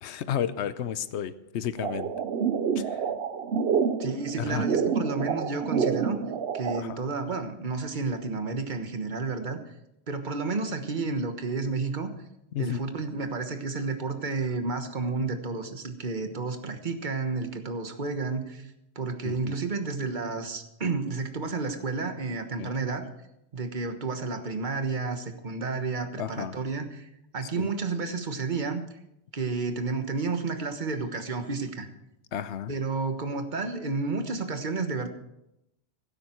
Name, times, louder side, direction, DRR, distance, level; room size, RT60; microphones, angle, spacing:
voice 1, 0.0-2.1 2.7-3.0 4.5-4.7 6.7-7.0 12.5-12.8 19.2-19.6 22.6-22.7 26.2-26.5 27.5-27.7 32.3-32.7, left 9 dB, 85° left, 14 dB, 1.0 m, -32 dB
sound 1, 1.8-6.8, right 6 dB, 65° right, 1.0 m, -28 dB
voice 2, 4.0-6.2 6.5-9.7 10.1-12.1 12.6-18.7 18.9-23.0 23.5-28.8 29.3-31.9 32.7-35.1, right 4 dB, 45° right, 7 dB, 1.4 m, -31 dB
15.5 x 12.5 x 4.5 m, 0.83 s
omnidirectional pair, 1.1 m